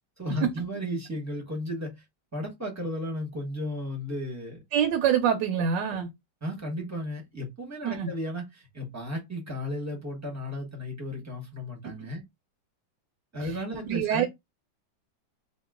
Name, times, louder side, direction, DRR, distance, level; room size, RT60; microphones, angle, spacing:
voice 1, 0.2-2.0 2.3-4.6 6.4-12.2 13.3-14.2, left 1 dB, 10° right, 0.8 m, -34 dB
voice 2, 4.7-6.1 7.8-8.1 13.8-14.2, right 8 dB, 80° right, 1.2 m, -25 dB
2.9 x 2.4 x 3.5 m
omnidirectional pair, 2.0 m